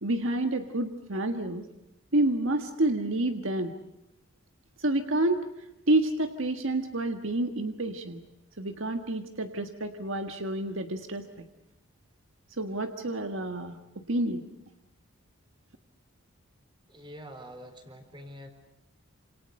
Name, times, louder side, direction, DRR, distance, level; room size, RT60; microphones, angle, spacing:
voice 1, 0.0-1.7 2.1-3.7 4.8-5.5 5.9-8.2 8.6-11.3 12.5-14.4, right 1 dB, 60° right, 6 dB, 1.6 m, -29 dB
voice 2, 16.9-18.5, equal, 20° right, 7 dB, 4.2 m, -45 dB
28.0 x 27.5 x 6.6 m, 0.91 s
head